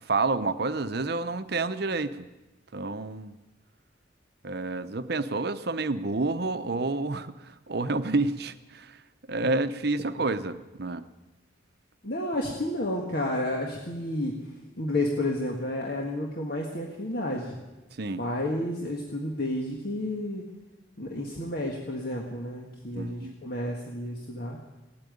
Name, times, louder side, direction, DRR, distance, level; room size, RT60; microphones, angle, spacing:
voice 1, 0.1-2.3 2.7-3.4 4.4-7.4 7.7-8.9 9.3-11.1 18.0-18.2 22.9-23.3, right 3 dB, 55° right, 11 dB, 0.8 m, -29 dB
voice 2, 12.0-14.4 14.8-17.6 18.2-20.4 21.0-24.6, left 1 dB, 55° left, 0 dB, 1.7 m, -31 dB
17.0 x 8.8 x 9.5 m, 1.1 s
head